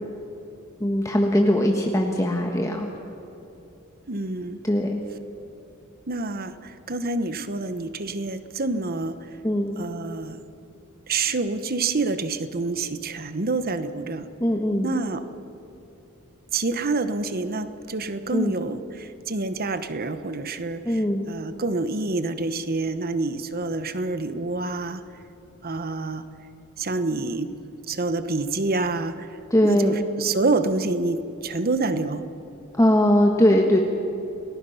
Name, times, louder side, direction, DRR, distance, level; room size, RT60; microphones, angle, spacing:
voice 1, 0.8-2.9 4.6-5.0 9.4-9.8 14.4-14.9 18.3-18.5 20.8-21.2 29.5-30.1 32.7-33.8, equal, 15° left, 1 dB, 1.4 m, -20 dB
voice 2, 4.1-4.6 6.1-9.3 9.8-10.4 11.1-14.3 14.8-15.2 16.5-25.0 25.6-26.2 26.8-27.6 27.9-32.2, right 3 dB, 45° right, 11 dB, 1.1 m, -27 dB
29.0 x 19.5 x 5.8 m, 2.9 s
head